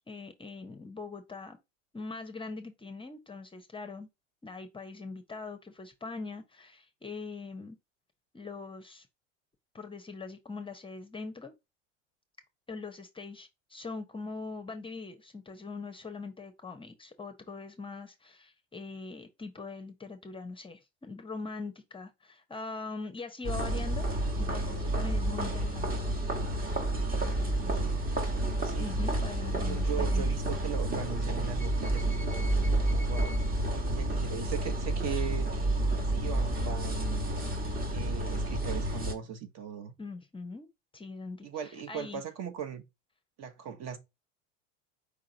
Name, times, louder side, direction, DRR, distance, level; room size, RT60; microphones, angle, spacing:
voice 1, 0.0-1.6 1.9-4.1 4.4-7.8 8.3-9.1 9.7-11.5 12.7-24.1 24.4-25.9 28.8-30.3 40.0-40.7 40.9-42.2, left 4 dB, 15° left, 0.7 m, -42 dB
sound 1, 23.4-39.1, right 1 dB, 25° right, 1.3 m, -30 dB
voice 2, 27.6-28.0 28.6-29.0 29.7-35.5 36.1-37.3 37.9-39.9 41.4-42.8 43.4-44.0, right 8 dB, 45° right, 1.2 m, -39 dB
5.0 x 3.7 x 2.7 m
hypercardioid pair, 90°, 38 cm